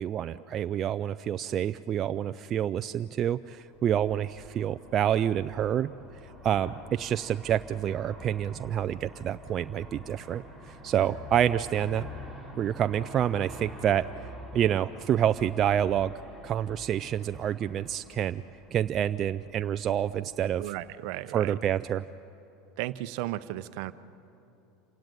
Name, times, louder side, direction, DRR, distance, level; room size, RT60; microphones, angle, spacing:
voice 1, 0.0-5.9 6.2-12.1 12.6-16.1 16.4-18.4 18.7-20.6 21.3-22.0, right 10 dB, 40° right, 11 dB, 0.5 m, -28 dB
Aircraft, 3.6-20.9, left 1 dB, 20° left, 5.3 m, -47 dB
voice 2, 20.6-21.6 22.8-23.9, right 16 dB, 65° right, 13 dB, 0.8 m, -35 dB
27.5 x 17.0 x 9.2 m, 3.0 s
hypercardioid pair, 95°, 0 cm